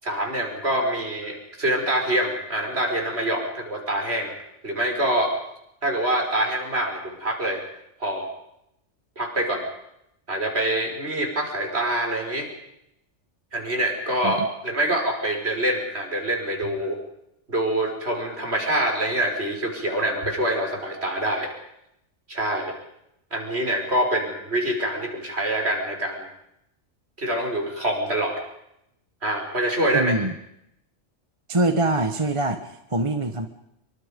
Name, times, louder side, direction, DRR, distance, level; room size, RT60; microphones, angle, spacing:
voice 1, 0.0-4.3 4.6-5.3 5.8-7.6 8.0-8.3 9.2-9.6 10.3-12.5 13.5-17.0 17.5-21.5 22.3-22.7 23.3-26.3 27.2-28.4 29.2-30.1, right 1 dB, 60° right, 2 dB, 5.9 m, -25 dB
voice 2, 29.9-30.3 31.5-33.5, right 2 dB, 25° right, 7 dB, 1.4 m, -24 dB
26.5 x 24.0 x 5.4 m, 0.79 s
omnidirectional pair, 1.2 m